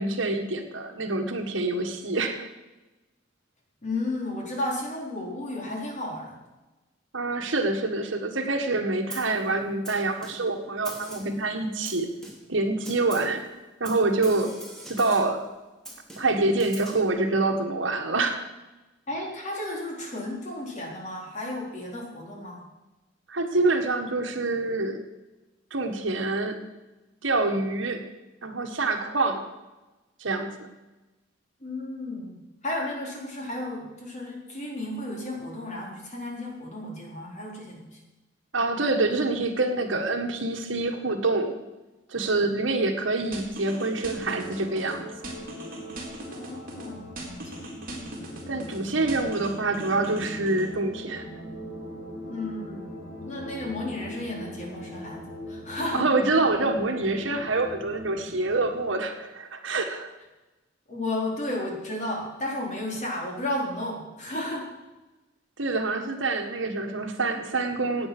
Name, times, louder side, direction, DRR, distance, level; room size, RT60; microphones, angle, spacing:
voice 1, 0.0-2.5 7.1-12.1 12.5-13.4 13.8-14.5 14.9-15.4 16.2-18.5 23.3-25.0 25.7-26.6 27.2-28.0 28.4-29.4 30.2-30.5 38.5-41.6 42.1-45.1 48.5-51.3 55.9-60.1 65.6-68.1, right 2 dB, 70° right, 5 dB, 1.6 m, -26 dB
voice 2, 3.8-6.4 19.1-22.6 31.6-38.0 46.3-47.6 52.2-53.0 53.2-56.1 60.9-64.7, left 1 dB, 40° left, -1 dB, 4.0 m, -33 dB
Snare drum, 9.1-9.4 9.8-10.6 10.8-11.4 11.8-12.6 12.8-13.4 13.8-15.4 15.8-17.1, right 1 dB, 5° left, 2.9 m, -42 dB
sound 1, 43.3-44.9 45.2-46.9 47.2-48.8 49.1-50.7, right 1 dB, 45° right, 3.8 m, -39 dB
sound 2, 44.2-58.9, equal, 70° left, 5.8 m, -41 dB
16.5 x 9.0 x 6.1 m, 1.1 s
head